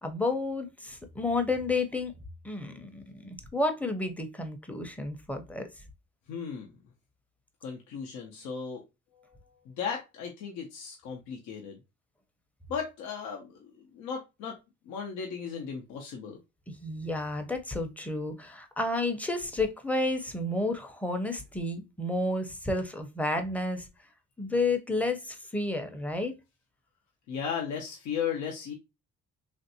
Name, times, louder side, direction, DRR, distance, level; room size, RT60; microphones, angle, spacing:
voice 1, 0.0-2.1 2.4-5.6 16.7-23.9 24.4-26.3, left 2 dB, 5° left, 0.5 m, -31 dB
voice 2, 6.3-6.7 7.6-8.8 9.1-9.4 9.7-11.8 12.7-14.6 14.9-16.4 27.3-28.7, left 7 dB, 90° left, 0.7 m, -36 dB
3.2 x 2.5 x 2.6 m
cardioid pair, 100°, 29 cm